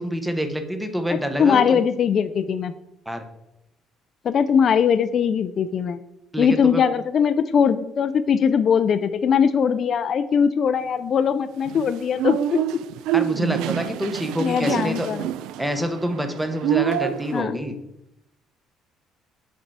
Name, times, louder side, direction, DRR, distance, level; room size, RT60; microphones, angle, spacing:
voice 1, 0.0-1.8 3.1-3.2 6.3-6.8 13.1-15.1 15.6-17.8, equal, 5° right, 7 dB, 0.7 m, -27 dB
voice 2, 1.4-2.7 4.2-6.0 6.4-12.6 14.4-15.2 17.3-17.6, left 7 dB, 40° left, 11 dB, 0.3 m, -20 dB
sound 1, 11.7-17.4, right 12 dB, 90° right, 0.3 m, -27 dB
6.4 x 4.4 x 4.7 m, 0.85 s
cardioid pair, 150°, 0 cm